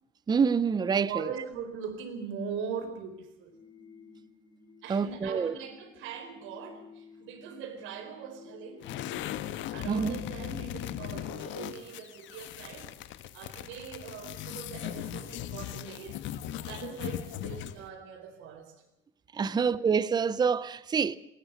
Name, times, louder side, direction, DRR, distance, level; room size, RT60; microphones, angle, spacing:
voice 1, 0.3-1.3 4.9-5.5 9.9-10.2 19.3-21.2, right 6 dB, 20° right, 0.7 m, -26 dB
voice 2, 1.1-3.5 4.8-8.9 9.7-16.2 16.7-18.8 19.5-19.7, right 7 dB, 75° right, 4.4 m, -41 dB
sound 1, 3.5-9.3, left 4 dB, 25° left, 5.9 m, -53 dB
sound 2, 8.8-17.9, left 11 dB, 65° left, 1.5 m, -38 dB
20.5 x 19.0 x 7.3 m
cardioid pair, 140°, 20 cm